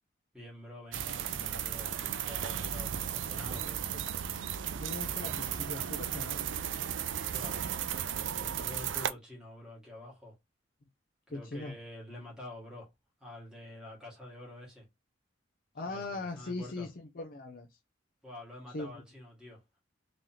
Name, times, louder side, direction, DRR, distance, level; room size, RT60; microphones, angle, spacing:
voice 1, 0.3-3.8 7.3-7.6 8.4-10.3 11.3-12.9 13.2-14.8 15.8-16.9 18.2-19.8, left 1 dB, 5° right, 1.8 m, -47 dB
sound 1, 0.9-9.1, right 9 dB, 75° right, 0.4 m, -35 dB
voice 2, 4.8-6.4 11.3-11.8 15.7-17.7 18.7-19.0, left 2 dB, 50° left, 0.6 m, -40 dB
3.7 x 3.4 x 2.8 m
head